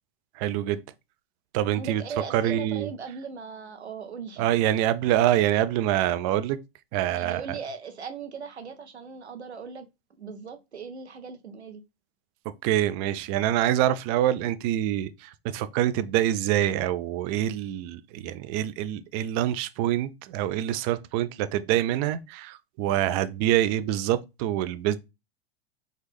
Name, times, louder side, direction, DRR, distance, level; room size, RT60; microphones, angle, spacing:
voice 1, 0.4-0.8 1.5-2.0 2.3-2.9 4.4-6.6 6.9-7.4 12.6-25.0, right 12 dB, 40° right, 0.4 m, -25 dB
voice 2, 1.7-4.4 4.7-4.8 7.2-9.9 10.2-11.8, right 5 dB, 85° right, 0.6 m, -39 dB
4.3 x 2.4 x 3.4 m
figure-of-eight pair, 90°, 32 cm